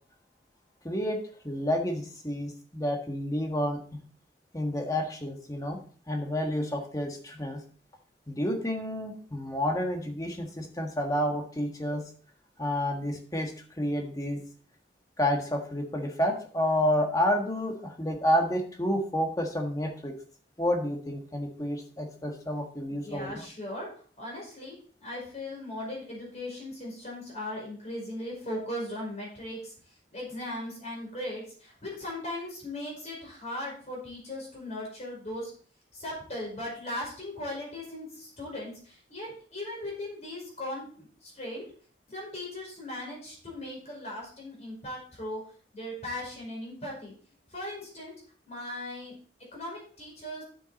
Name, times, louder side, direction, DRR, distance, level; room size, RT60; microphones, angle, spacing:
voice 1, 0.8-4.0 4.5-5.8 6.1-7.6 8.3-12.0 12.6-14.4 15.2-20.1 20.6-23.4, equal, 20° left, 3 dB, 1.5 m, -30 dB
voice 2, 22.9-29.7 30.1-35.5 35.9-41.7 42.1-45.4 45.7-47.1 47.5-48.1 48.5-49.2 49.5-50.4, left 1 dB, 40° left, -3 dB, 5.1 m, -38 dB
9.0 x 7.8 x 4.1 m, 0.43 s
head